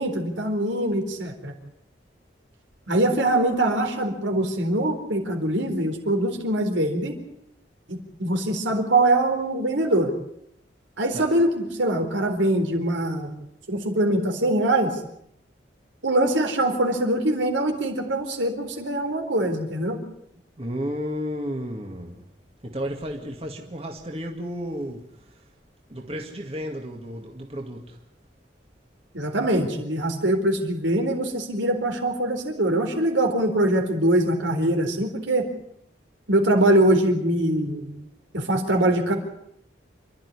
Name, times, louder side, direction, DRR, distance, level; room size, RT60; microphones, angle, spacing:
voice 1, 0.0-1.5 2.9-7.2 7.9-10.1 11.0-13.3 13.7-14.9 16.0-20.0 29.1-35.5 36.3-37.9 38.3-39.2, right 1 dB, 80° right, 4.2 m, -23 dB
voice 2, 20.6-22.2 22.6-25.0 25.9-28.0, equal, 30° right, 2.1 m, -32 dB
28.0 x 12.5 x 9.8 m
head